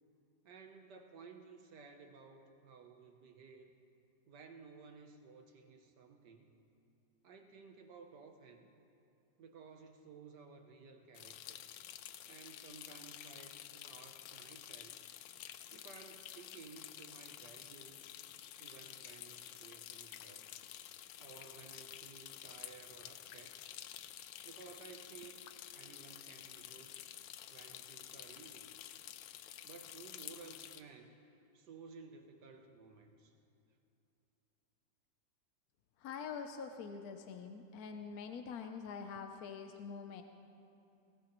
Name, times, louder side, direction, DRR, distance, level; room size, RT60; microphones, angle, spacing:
voice 1, 0.4-3.7 4.3-6.5 7.2-8.7 9.4-11.6 12.2-15.1 15.7-18.1 18.6-20.5 21.2-23.6 24.4-27.0 27.5-28.7 29.6-31.2 31.5-33.3, right 5 dB, 65° right, 4 dB, 1.4 m, -56 dB
sound 1, 11.1-30.8, left 12 dB, 90° left, 1.4 m, -51 dB
voice 2, 36.0-40.2, left 6 dB, 65° left, 6 dB, 1.0 m, -45 dB
20.0 x 17.5 x 3.0 m, 2.8 s
omnidirectional pair, 2.0 m